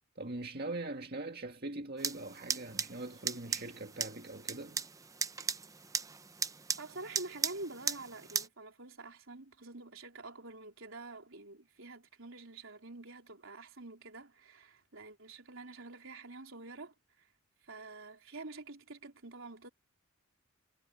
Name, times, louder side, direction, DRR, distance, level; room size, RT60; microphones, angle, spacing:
voice 1, 0.2-4.8, right 2 dB, 50° right, 1.9 m, -42 dB
sound 1, 2.0-8.5, right 5 dB, 15° right, 0.7 m, -38 dB
voice 2, 6.8-17.3 17.6-19.7, right 2 dB, 75° right, 3.8 m, -47 dB
head